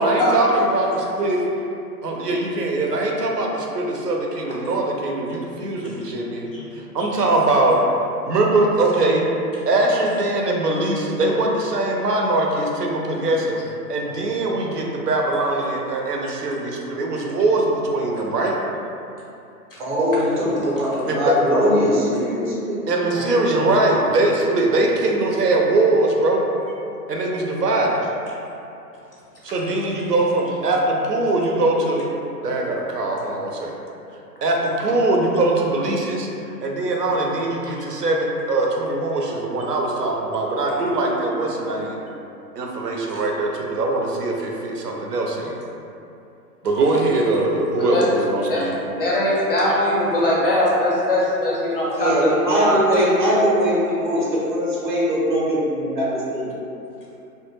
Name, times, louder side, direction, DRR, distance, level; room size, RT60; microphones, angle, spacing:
voice 1, 0.0-0.9 1.1-1.4 2.0-6.5 6.8-7.8 8.3-9.3 9.7-13.6 13.9-18.6 21.1-21.4 22.9-26.5 27.1-28.0 29.4-32.1 32.4-33.7 34.4-36.3 36.6-42.0 42.6-45.6 46.6-48.7, right 2 dB, 80° right, -1 dB, 0.5 m, -21 dB
voice 2, 19.8-22.8 23.1-23.2 23.5-23.6 51.9-56.5, equal, 30° right, -7 dB, 0.5 m, -21 dB
voice 3, 49.0-52.3 52.6-53.0, left 1 dB, 40° left, -6 dB, 0.4 m, -21 dB
2.1 x 2.1 x 3.0 m, 2.7 s
figure-of-eight pair, 115°, 47 cm